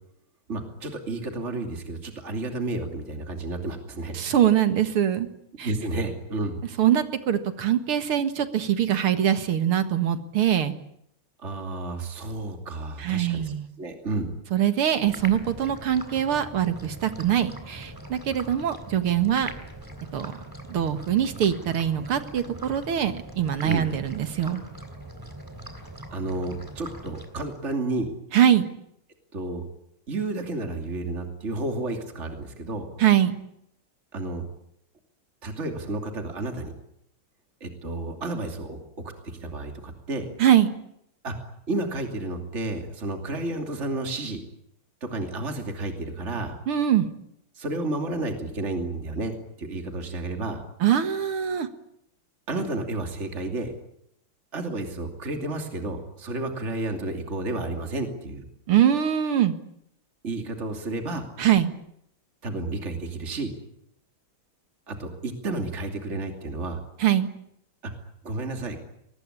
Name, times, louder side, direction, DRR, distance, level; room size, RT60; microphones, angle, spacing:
voice 1, 0.5-4.2 5.6-6.6 11.4-14.3 23.6-23.9 26.1-28.1 29.3-29.7 30.1-32.9 34.1-34.5 35.4-36.7 37.6-38.8 39.2-40.3 41.2-41.3 41.7-44.4 45.0-46.6 47.6-50.6 52.5-53.7 54.5-58.4 60.2-61.2 62.4-63.5 64.9-66.8 67.8-67.9 68.2-68.8, right 2 dB, 30° right, 4 dB, 3.1 m, -31 dB
voice 2, 4.1-5.3 5.6-5.7 6.8-10.7 13.0-13.6 14.5-19.5 20.1-20.4 20.7-24.6 28.3-28.7 33.0-33.4 40.4-40.7 46.7-47.1 50.8-51.7 58.7-59.5 61.4-61.7 67.0-67.3, right 10 dB, 85° right, 9 dB, 2.6 m, -23 dB
sound 1, 15.1-27.8, right 1 dB, 10° right, 3.4 m, -42 dB
23.5 x 20.0 x 9.9 m, 0.76 s
omnidirectional pair, 2.3 m